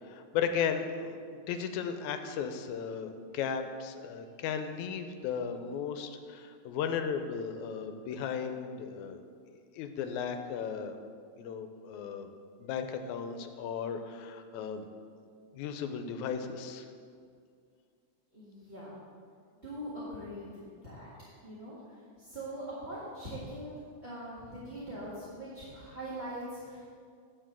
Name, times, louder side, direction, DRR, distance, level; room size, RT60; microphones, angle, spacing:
voice 1, 0.0-1.1 1.5-9.2 9.7-11.0 11.4-12.3 12.6-14.9 15.5-16.9, left 7 dB, 80° left, 7 dB, 2.0 m, -35 dB
voice 2, 18.3-19.0 19.6-21.1 21.4-26.8, right 1 dB, 25° right, -10 dB, 1.6 m, -42 dB
10.5 x 4.6 x 7.5 m, 2.2 s
omnidirectional pair, 3.4 m